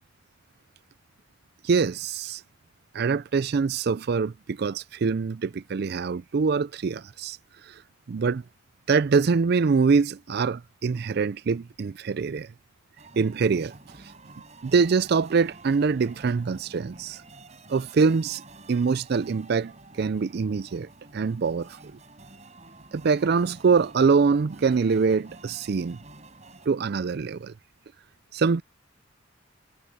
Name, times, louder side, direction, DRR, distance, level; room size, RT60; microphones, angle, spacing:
voice 1, 1.6-2.4 2.9-7.4 7.6-7.8 8.1-8.4 8.9-12.5 13.2-13.7 14.6-17.2 17.7-18.4 18.7-19.7 20.0-21.9 22.9-26.0 26.7-27.5 28.3-28.6, right 5 dB, 55° right, 0.4 m, -24 dB
sound 1, 13.0-26.7, right 2 dB, 35° right, 5.9 m, -49 dB
head